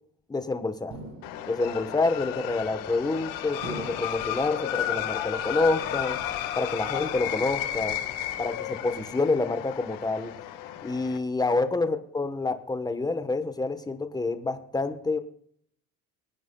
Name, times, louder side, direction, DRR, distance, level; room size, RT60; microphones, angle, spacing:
voice 1, 0.3-1.0 1.5-6.2 6.6-8.0 8.4-10.3 10.8-15.2, left 3 dB, 10° left, 9 dB, 1.1 m, -28 dB
sound 1, 0.9-1.8 2.6-3.1 3.6-4.4 4.9-5.5 5.9-6.6 6.9-7.4 7.8-8.4, right 2 dB, 60° right, 4.8 m, -45 dB
sound 2, 1.2-11.2, left 11 dB, 85° left, 1.6 m, -33 dB
23.0 x 9.2 x 2.3 m, 0.64 s
cardioid pair, 120°, 32 cm